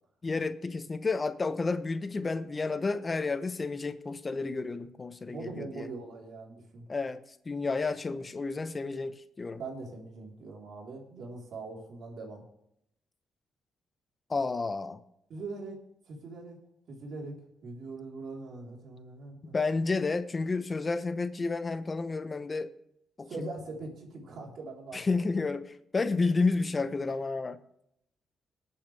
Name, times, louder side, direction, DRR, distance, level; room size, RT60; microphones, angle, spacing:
voice 1, 0.2-5.9 6.9-9.6 14.3-15.0 19.4-22.7 23.2-23.3 24.9-27.6, left 3 dB, 30° left, 11 dB, 0.8 m, -31 dB
voice 2, 5.2-6.8 9.6-12.4 15.3-15.8 16.1-16.6 16.9-19.5 23.3-25.1, right 3 dB, 70° right, 0 dB, 3.7 m, -42 dB
20.5 x 8.6 x 3.4 m, 0.75 s
cardioid pair, 90°, 0 cm